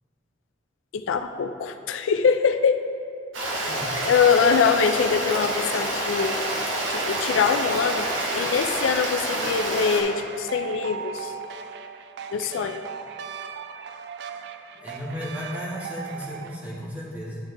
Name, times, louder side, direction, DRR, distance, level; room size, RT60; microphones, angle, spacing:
voice 1, 0.9-2.8 4.1-6.4 6.9-11.3 12.3-12.8, left 6 dB, 80° left, 8 dB, 0.4 m, -23 dB
Stream, 3.3-10.0, right 1 dB, 90° right, 1.2 m, -28 dB
sound 1, 5.8-16.6, right 6 dB, 60° right, 0.3 m, -38 dB
voice 2, 14.7-17.4, equal, 10° right, -7 dB, 1.6 m, -34 dB
10.5 x 4.5 x 3.4 m, 2.4 s
head